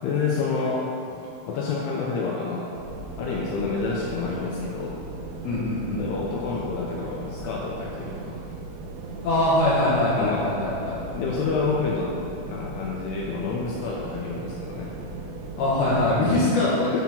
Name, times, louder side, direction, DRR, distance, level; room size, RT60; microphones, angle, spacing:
voice 1, 0.0-2.7 3.2-5.0 6.0-8.4 10.2-10.5 11.1-12.2 12.5-14.9 16.9-17.0, left 4 dB, 85° left, -3 dB, 2.4 m, -28 dB
sound 1, 2.7-16.3, right 3 dB, 80° right, 2.7 m, -38 dB
voice 2, 5.4-6.0 9.2-11.0 15.6-17.0, left 1 dB, 70° left, -8 dB, 2.7 m, -22 dB
9.5 x 3.7 x 5.8 m, 2.6 s
omnidirectional pair, 5.3 m